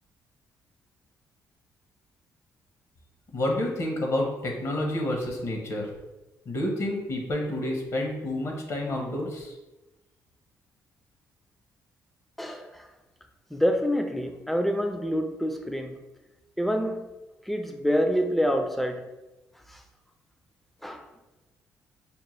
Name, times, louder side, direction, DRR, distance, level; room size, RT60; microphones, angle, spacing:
voice 1, 3.3-5.9 6.5-9.6, left 1 dB, 55° left, 1 dB, 0.9 m, -29 dB
voice 2, 12.4-12.9 13.5-16.0 16.6-17.0 17.5-19.0 19.7-19.8 20.8-21.0, equal, ahead, 5 dB, 0.4 m, -27 dB
5.3 x 2.1 x 3.1 m, 1.0 s
cardioid pair, 105°, 6 cm